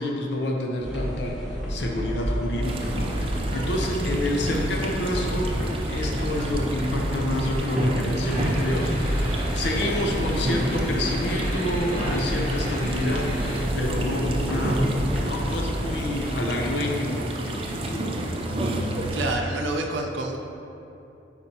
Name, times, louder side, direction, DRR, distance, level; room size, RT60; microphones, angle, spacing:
voice 1, 0.0-1.4 1.7-5.5 5.9-14.9 15.2-18.7, left 1 dB, 65° left, 0 dB, 0.7 m, -29 dB
sound 1, 0.8-16.3, equal, ahead, 1.4 m, -30 dB
sound 2, 2.6-19.4, right 1 dB, 30° right, 0.4 m, -30 dB
sound 3, 8.2-13.6, equal, 30° left, 1.1 m, -34 dB
voice 2, 19.1-20.4, right 2 dB, 75° right, 1 dB, 0.6 m, -28 dB
9.7 x 4.4 x 2.8 m, 2.8 s
head